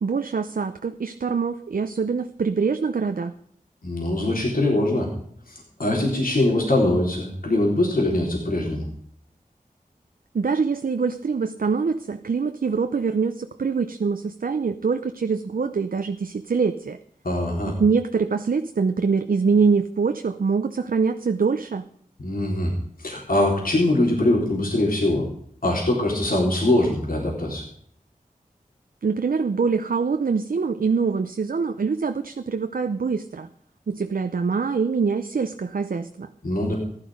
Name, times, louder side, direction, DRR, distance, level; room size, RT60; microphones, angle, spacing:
voice 1, 0.0-3.3 10.3-17.0 17.6-21.8 29.0-33.5 33.9-36.3, right 5 dB, 75° right, 8 dB, 0.6 m, -24 dB
voice 2, 3.8-5.1 5.5-8.9 17.2-17.7 22.2-22.7 23.0-25.3 25.6-27.6 36.4-36.7, left 1 dB, 75° left, -2 dB, 3.9 m, -22 dB
15.0 x 11.5 x 5.0 m, 0.64 s
wide cardioid pair, 65°, 15 cm